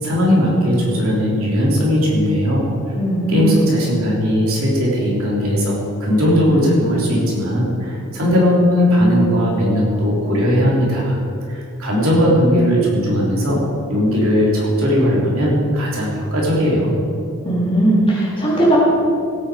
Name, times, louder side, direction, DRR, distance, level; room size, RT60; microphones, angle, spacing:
voice 1, 0.0-2.7 3.3-11.2 11.5-13.6 13.9-17.0, equal, 65° right, -4 dB, 3.7 m, -17 dB
voice 2, 3.0-3.5 17.4-18.8, right 1 dB, 25° left, -6 dB, 3.8 m, -17 dB
16.5 x 9.2 x 5.1 m, 2.5 s
head